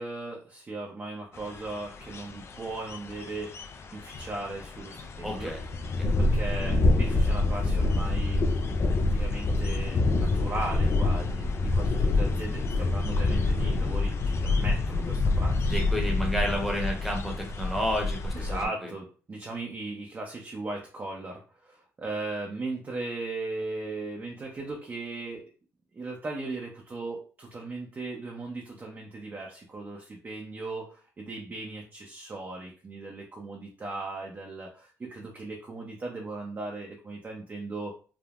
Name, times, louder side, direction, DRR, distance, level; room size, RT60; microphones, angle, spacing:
voice 1, 0.0-3.6 3.9-5.6 6.2-8.4 9.0-15.8 18.3-25.4 25.9-37.9, right 2 dB, 30° right, -1 dB, 0.6 m, -37 dB
sound 1, 1.4-18.7, left 2 dB, 40° left, 0.4 m, -27 dB
voice 2, 5.2-5.6 6.0-6.1 15.7-18.6, equal, ahead, 0 dB, 0.9 m, -31 dB
3.4 x 2.0 x 2.4 m, 0.39 s
cardioid pair, 80°, 7 cm